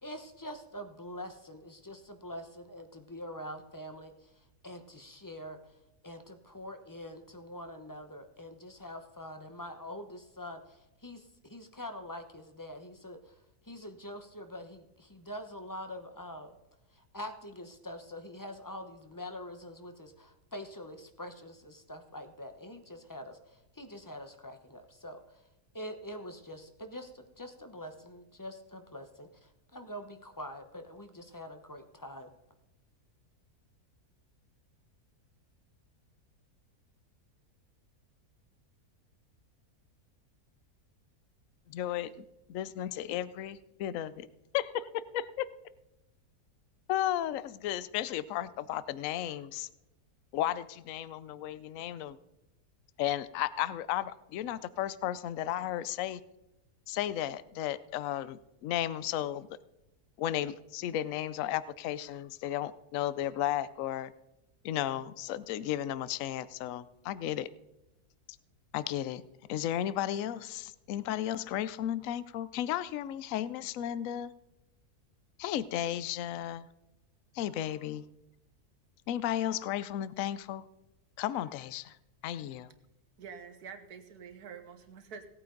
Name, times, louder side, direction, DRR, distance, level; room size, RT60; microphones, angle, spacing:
voice 1, 0.0-5.7 6.0-13.4 13.6-16.5 16.9-25.4 25.7-32.3, left 1 dB, 15° left, 7 dB, 0.8 m, -45 dB
voice 2, 41.7-44.3 44.5-45.5 46.9-49.7 50.3-52.2 53.0-56.2 56.9-59.5 60.2-64.1 64.6-67.5 68.7-69.2 69.5-74.3 75.4-76.7 77.3-78.0 79.1-80.7 81.2-82.0 82.2-82.7, left 12 dB, 65° left, 17 dB, 0.9 m, -34 dB
voice 3, 83.2-85.3, right 6 dB, 80° right, 8 dB, 1.7 m, -47 dB
17.5 x 8.8 x 3.9 m, 0.95 s
omnidirectional pair, 1.6 m